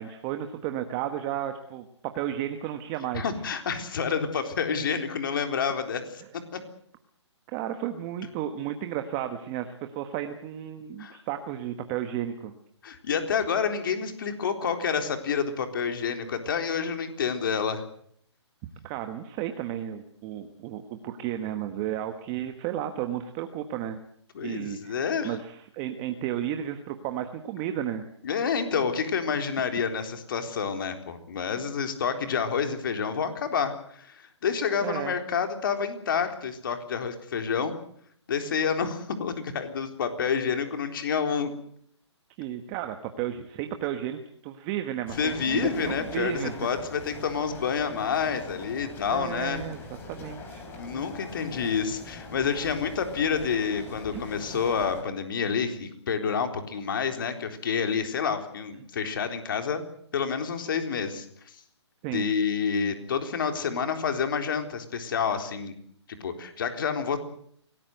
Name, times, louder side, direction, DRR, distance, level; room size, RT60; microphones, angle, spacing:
voice 1, 0.0-3.2 7.5-12.5 18.8-24.0 24.4-28.1 34.8-35.2 42.4-46.6 49.1-49.8 50.1-50.7 54.1-54.2 54.5-54.6 62.0-62.3, right 11 dB, 20° right, 8 dB, 1.2 m, -33 dB
voice 2, 3.1-6.2 6.5-6.6 11.0-11.2 12.8-17.8 24.3-25.4 28.2-37.7 38.3-41.5 45.2-49.6 50.8-59.8 60.1-61.6 62.1-65.7 66.1-67.2, left 6 dB, 45° left, 6 dB, 3.9 m, -28 dB
sound 1, 45.1-55.0, left 3 dB, 15° left, 3.9 m, -43 dB
25.5 x 18.5 x 7.9 m, 0.64 s
hypercardioid pair, 160°, 15 cm